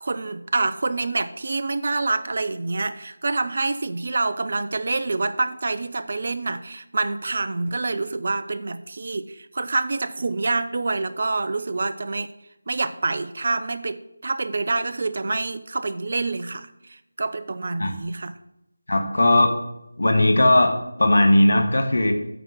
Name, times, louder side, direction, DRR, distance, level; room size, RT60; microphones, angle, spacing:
voice 1, 0.0-12.3 12.7-18.3, right 3 dB, 45° right, 12 dB, 0.5 m, -27 dB
voice 2, 18.9-19.5 20.0-22.1, left 1 dB, 60° left, 5 dB, 1.5 m, -18 dB
9.2 x 4.4 x 7.2 m, 0.86 s
figure-of-eight pair, 160°, 0 cm